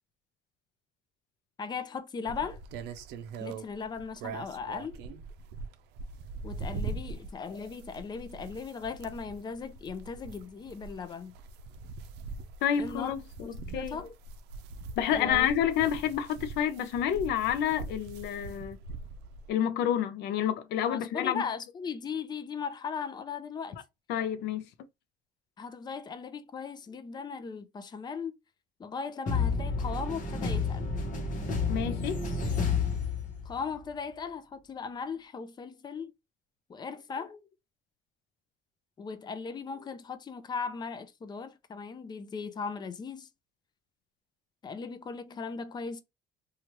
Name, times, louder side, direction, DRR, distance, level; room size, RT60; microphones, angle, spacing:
voice 1, 1.6-2.6 3.4-5.0 6.4-11.3 12.8-13.1 13.7-14.1 15.1-15.5 20.9-23.8 25.6-28.3 28.8-30.9 33.4-36.1 36.7-37.4 39.0-43.3 44.6-46.0, left 5 dB, 25° left, 0.5 m, -38 dB
sound 1, 2.3-19.5, right 4 dB, 90° right, 0.5 m, -42 dB
voice 2, 12.6-13.2 13.7-14.0 15.0-18.8 19.5-21.4 24.1-24.6 31.7-32.2, left 9 dB, 80° left, 0.5 m, -29 dB
sound 2, 29.3-33.7, left 4 dB, 50° left, 0.9 m, -30 dB
3.0 x 2.4 x 2.9 m
cardioid pair, 110°, 17 cm